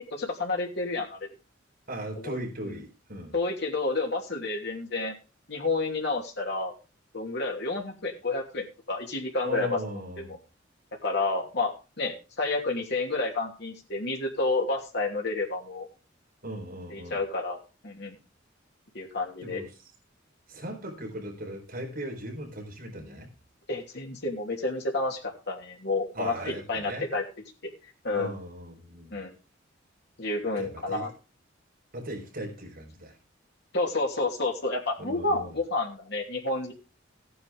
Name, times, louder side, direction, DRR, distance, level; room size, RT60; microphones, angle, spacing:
voice 1, 0.1-1.2 2.2-2.4 2.7-2.8 3.3-5.1 5.5-6.7 7.1-9.8 10.2-10.3 11.0-15.9 16.9-18.2 18.9-19.6 23.7-27.2 28.0-28.3 29.1-29.3 30.2-31.1 33.7-36.7, left 3 dB, 60° left, 0 dB, 2.9 m, -30 dB
voice 2, 1.9-3.3 9.4-10.4 16.4-17.2 19.4-19.7 20.5-23.3 26.1-27.1 28.1-29.2 30.6-31.1 31.9-33.2 35.0-35.6, right 1 dB, 50° right, 1 dB, 4.1 m, -38 dB
15.0 x 9.7 x 3.6 m, 0.33 s
head